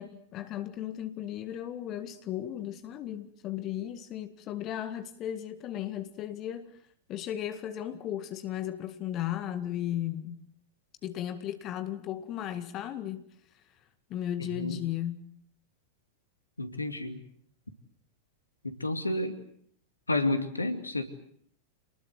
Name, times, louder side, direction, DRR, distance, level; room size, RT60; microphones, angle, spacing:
voice 1, 0.0-6.8 7.1-10.4 11.0-13.2 14.1-15.3, left 11 dB, 35° left, 1.9 m, -35 dB
voice 2, 14.4-14.8 16.6-17.2 18.6-19.4 20.1-21.1, left 2 dB, 80° left, 2.5 m, -30 dB
28.0 x 20.5 x 7.9 m
figure-of-eight pair, 90°, 0 cm